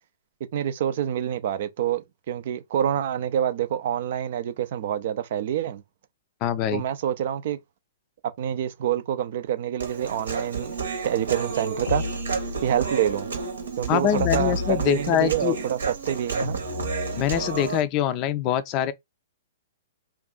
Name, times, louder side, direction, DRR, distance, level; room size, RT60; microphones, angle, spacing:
voice 1, 0.5-5.8 6.7-7.6 8.4-10.8 11.0-12.0 12.6-13.3 13.8-16.6, right 10 dB, 50° right, 0.4 m, -27 dB
voice 2, 6.4-6.8 13.9-15.6 17.1-18.9, left 10 dB, 35° left, 0.4 m, -24 dB
Human voice, 9.8-17.8, right 5 dB, 65° right, 0.9 m, -31 dB
sound 1, 11.9-12.9 14.1-15.4 16.4-17.7, left 6 dB, 75° left, 0.7 m, -33 dB
2.6 x 2.3 x 3.7 m
figure-of-eight pair, 115°, 0 cm